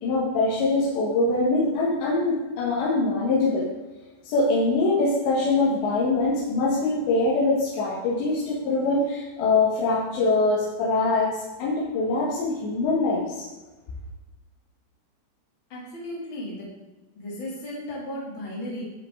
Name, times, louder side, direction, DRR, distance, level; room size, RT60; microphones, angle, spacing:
voice 1, 0.0-3.6 4.2-13.5, left 3 dB, 80° left, -6 dB, 4.0 m, -23 dB
voice 2, 15.7-16.7 17.1-18.8, left 1 dB, 30° left, -5 dB, 3.4 m, -35 dB
13.5 x 7.7 x 3.9 m, 1.1 s
omnidirectional pair, 5.0 m